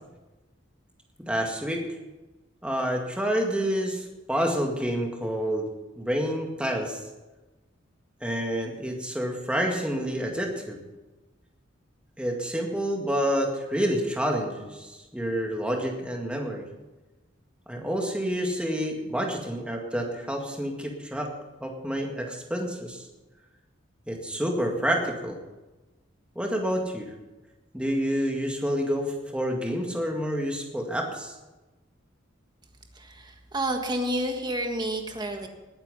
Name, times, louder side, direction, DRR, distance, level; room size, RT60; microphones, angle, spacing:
voice 1, 1.2-1.8 2.6-5.7 6.0-7.0 8.2-10.8 12.2-16.7 17.7-21.3 21.6-23.1 24.1-25.4 26.4-27.1 27.7-31.4, equal, 5° right, 1 dB, 2.0 m, -28 dB
voice 2, 32.9-35.5, right 1 dB, 20° right, 4 dB, 1.6 m, -30 dB
19.5 x 8.8 x 5.5 m, 1.1 s
head